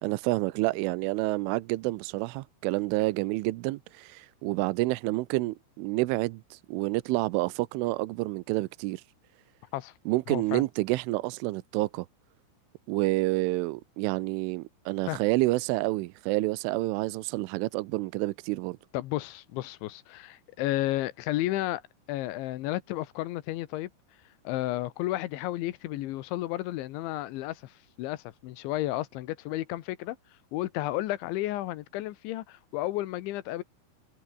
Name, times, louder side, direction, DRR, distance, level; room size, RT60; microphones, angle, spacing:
voice 1, 0.0-9.0 10.1-12.1 12.9-18.8, right 20 dB, 85° right, 3.2 m, -29 dB
voice 2, 10.3-10.6 15.1-15.2 18.9-21.8 22.1-23.9 24.4-30.2 30.5-33.6, left 16 dB, 75° left, 3.4 m, -32 dB
omnidirectional pair, 5.7 m